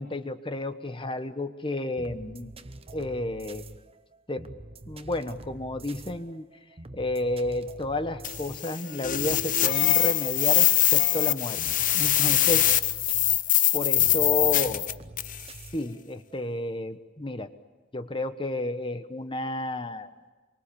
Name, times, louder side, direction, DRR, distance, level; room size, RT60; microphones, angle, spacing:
voice 1, 0.0-2.5 2.9-3.6 4.3-4.5 4.9-6.4 6.9-11.6 11.9-12.7 13.7-14.8 15.7-17.5 17.9-20.1, left 2 dB, 30° left, 9 dB, 1.2 m, -31 dB
sound 1, 1.7-16.4, right 2 dB, 30° right, 1.0 m, -46 dB
sound 2, 8.2-15.4, left 13 dB, 45° left, 0.7 m, -23 dB
26.5 x 24.0 x 7.1 m, 1.3 s
head